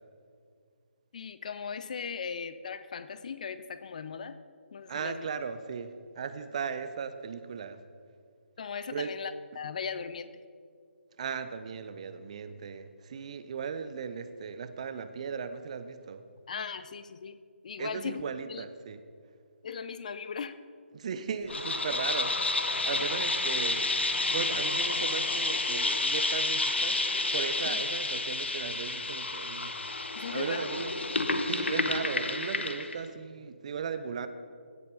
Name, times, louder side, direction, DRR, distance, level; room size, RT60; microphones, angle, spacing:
voice 1, 1.1-4.4 4.7-5.3 8.6-10.3 16.5-17.4 17.6-18.2 18.5-18.6 19.6-20.6 27.6-27.8 30.2-30.8 31.9-32.0, left 6 dB, 40° left, 13 dB, 0.5 m, -38 dB
voice 2, 4.9-7.8 8.9-9.1 11.2-16.2 17.8-19.0 20.9-22.5 22.8-24.0 24.3-27.0 27.3-29.7 30.3-30.9 31.4-34.3, right 6 dB, 35° right, 11 dB, 0.6 m, -37 dB
sound 1, 21.5-33.0, left 2 dB, 65° left, 1.1 m, -30 dB
16.0 x 7.5 x 5.5 m, 2.2 s
figure-of-eight pair, 145°, 7 cm